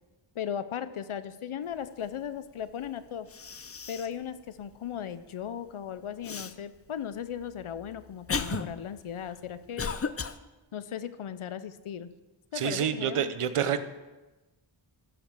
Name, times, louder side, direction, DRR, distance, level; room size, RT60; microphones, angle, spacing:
voice 1, 0.3-3.3 3.9-10.0 10.7-12.1 12.5-13.3, left 8 dB, 80° left, 13 dB, 0.7 m, -37 dB
Cough, 2.9-3.0 3.3-4.2 4.7-4.8 6.2-6.5 7.3-10.4, left 5 dB, 30° left, 0.5 m, -35 dB
voice 2, 12.5-13.8, right 9 dB, 90° right, 12 dB, 0.8 m, -28 dB
13.5 x 5.2 x 6.1 m, 1.1 s
wide cardioid pair, 50°, 50 cm